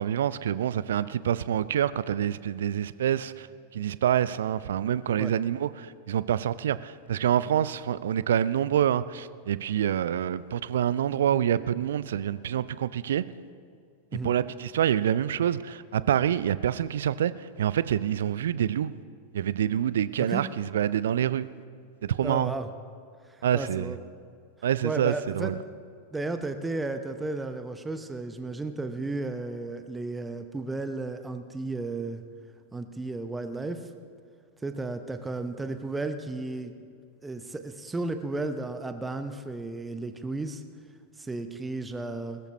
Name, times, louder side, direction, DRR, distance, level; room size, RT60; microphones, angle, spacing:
voice 1, 0.0-3.5 3.7-13.2 14.2-17.3 17.6-18.9 19.3-21.5 22.0-22.5 23.4-23.9 24.6-25.5, right 10 dB, 60° right, 17 dB, 0.4 m, -26 dB
voice 2, 22.2-22.7 23.3-24.0 24.8-25.5 26.1-32.2 32.7-33.9 34.6-36.7 37.2-40.6 41.2-42.4, right 2 dB, 10° right, 9 dB, 0.8 m, -33 dB
20.5 x 13.5 x 3.2 m, 2.3 s
figure-of-eight pair, 90°, 0 cm